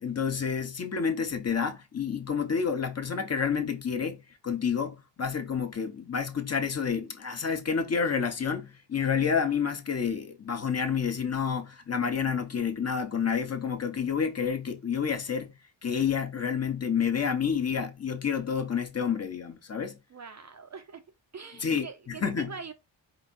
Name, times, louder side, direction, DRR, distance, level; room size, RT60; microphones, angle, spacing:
voice 1, 0.0-4.2 4.4-15.5 15.8-20.0 21.6-22.5, left 6 dB, 35° left, 0.7 m, -29 dB
voice 2, 20.1-21.0 21.3-22.7, right 5 dB, 40° right, 0.4 m, -43 dB
4.7 x 2.5 x 4.0 m
wide cardioid pair, 175°, 46 cm